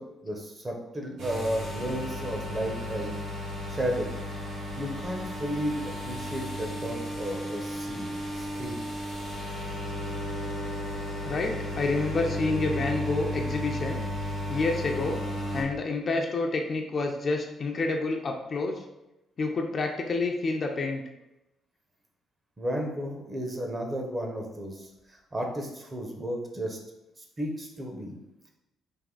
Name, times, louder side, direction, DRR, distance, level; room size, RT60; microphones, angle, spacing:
voice 1, 0.0-3.2 3.7-4.1 4.7-8.8 22.6-26.8 27.4-28.2, equal, 25° right, 1 dB, 0.9 m, -33 dB
sound 1, 1.2-15.6, equal, 75° right, 1.2 m, -34 dB
voice 2, 11.2-14.0 14.5-15.2 15.5-18.8 19.4-21.0, left 3 dB, 45° left, 2 dB, 0.5 m, -29 dB
3.6 x 2.6 x 3.8 m, 0.92 s
cardioid pair, 90°, 0 cm